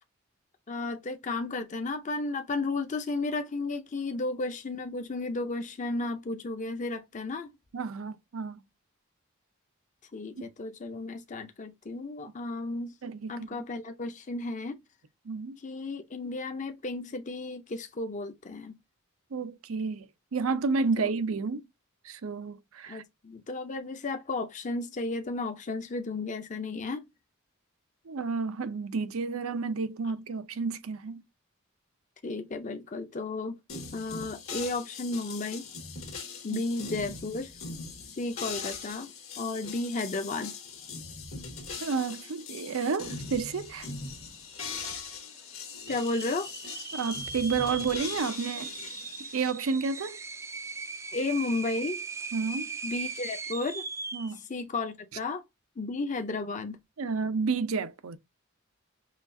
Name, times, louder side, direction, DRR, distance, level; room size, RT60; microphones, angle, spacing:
voice 1, 0.7-7.5 10.1-13.0 13.3-14.8 15.6-18.8 21.0-21.1 22.9-27.1 32.2-35.7 36.4-37.5 38.1-40.5 45.9-46.5 51.1-52.0 52.8-53.9 54.5-55.4 55.8-56.8, left 3 dB, 35° left, 0.5 m, -33 dB
voice 2, 7.7-8.6 13.0-13.3 15.3-15.6 19.3-21.7 22.0-23.0 28.1-31.2 36.5-36.6 41.8-43.9 46.9-48.7 49.3-50.2 52.3-52.8 54.1-54.4 57.0-58.2, right 4 dB, 85° right, 0.6 m, -31 dB
sound 1, 33.7-49.5, left 5 dB, 75° left, 1.6 m, -41 dB
sound 2, 43.5-43.6 43.8-44.3 44.8-44.9 45.7-54.4, right 4 dB, 15° right, 0.3 m, -39 dB
5.8 x 2.4 x 2.6 m
head